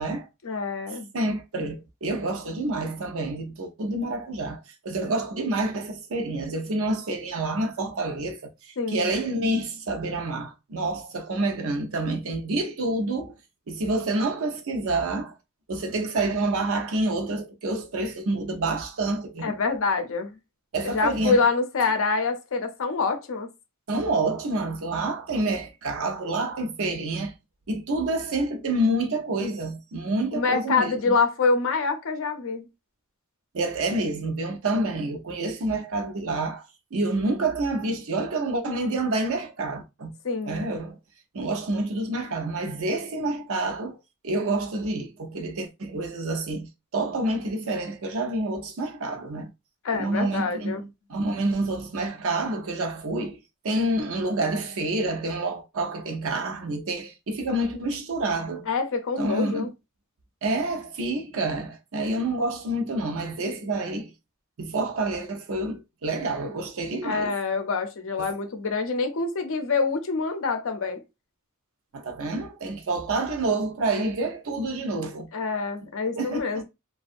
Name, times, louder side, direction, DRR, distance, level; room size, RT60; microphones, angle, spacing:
voice 1, 0.4-1.1 8.8-9.1 19.4-20.4 20.8-23.5 30.3-32.7 40.2-40.7 49.8-50.8 58.7-59.7 67.0-71.0 75.3-76.6, left 4 dB, 65° left, 0.6 m, -26 dB
voice 2, 1.1-13.3 13.7-15.4 15.7-19.5 20.7-21.4 23.9-27.3 27.7-31.1 33.5-36.7 36.9-40.1 40.5-41.0 41.3-44.0 44.2-49.5 49.9-53.4 53.6-58.7 59.2-59.7 60.4-64.1 64.6-67.3 71.9-75.3 76.2-76.6, right 2 dB, 65° right, 0.6 m, -28 dB
2.6 x 2.3 x 2.4 m
head